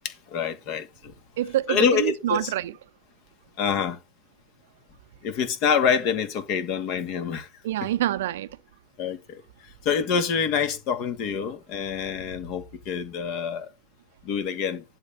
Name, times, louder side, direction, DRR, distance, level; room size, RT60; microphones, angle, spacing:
voice 1, 0.0-1.1 1.7-2.4 3.6-4.0 5.2-7.5 9.0-9.4 9.8-13.7 14.2-14.8, left 6 dB, 40° left, 2.2 m, -26 dB
voice 2, 1.4-2.8 7.6-8.6, right 13 dB, 55° right, 0.7 m, -26 dB
11.0 x 4.1 x 7.1 m
figure-of-eight pair, 90°, 0 cm